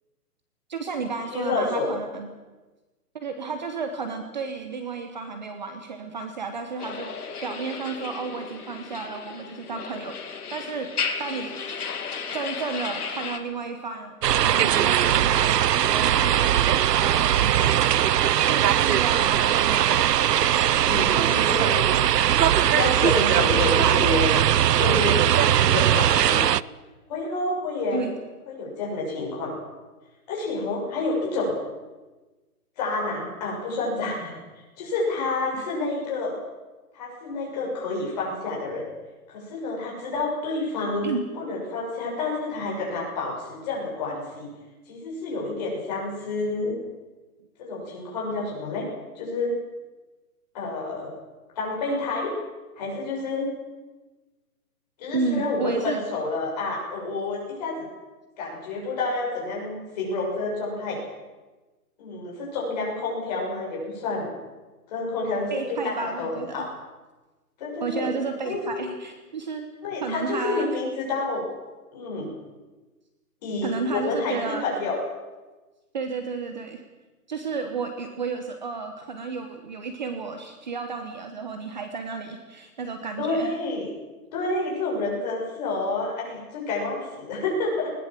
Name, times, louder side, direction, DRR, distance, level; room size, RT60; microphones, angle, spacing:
voice 1, 0.7-2.3 3.1-10.9 11.2-11.8 12.3-15.6 15.9-17.3 18.5-20.1 21.0-22.1 27.9-28.1 41.0-41.2 55.1-56.0 65.5-66.6 67.8-69.7 70.0-70.7 73.6-74.6 75.9-76.8 77.3-83.6, right 4 dB, 30° right, 7 dB, 1.2 m, -32 dB
voice 2, 1.3-1.9 20.9-21.8 22.6-24.3 24.7-26.5 27.1-28.0 28.5-29.5 30.3-31.5 32.8-34.4 34.8-36.4 36.9-38.8 39.3-44.5 44.9-46.8 47.6-48.9 49.1-49.6 50.5-51.1 51.5-52.3 52.7-53.5 55.0-57.9 58.4-61.0 62.0-64.3 64.9-66.6 67.6-68.1 68.4-68.8 69.8-71.5 71.9-72.3 73.4-75.0 83.2-83.9 84.3-87.9, left 3 dB, 25° left, -3 dB, 6.7 m, -29 dB
sound 1, 6.8-13.4, left 5 dB, 70° left, 2.8 m, -34 dB
sound 2, 14.2-26.6, right 10 dB, 90° right, 0.7 m, -20 dB
20.5 x 18.5 x 7.6 m, 1.2 s
hypercardioid pair, 175°, 46 cm